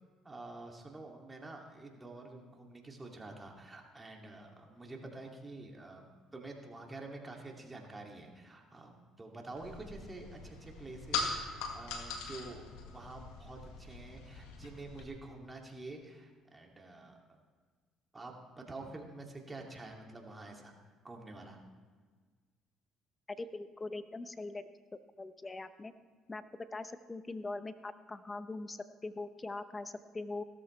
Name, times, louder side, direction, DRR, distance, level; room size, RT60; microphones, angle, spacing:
voice 1, 0.2-6.0 6.3-17.2 18.1-20.7 21.0-21.6, right 2 dB, 20° right, 1 dB, 2.4 m, -48 dB
sound 1, 9.6-15.1, left 4 dB, 85° left, 1.7 m, -41 dB
voice 2, 23.3-24.6 24.9-25.9 26.3-30.4, left 3 dB, 25° left, 12 dB, 0.8 m, -42 dB
16.5 x 13.5 x 3.2 m, 1.5 s
supercardioid pair, 80°, 0 cm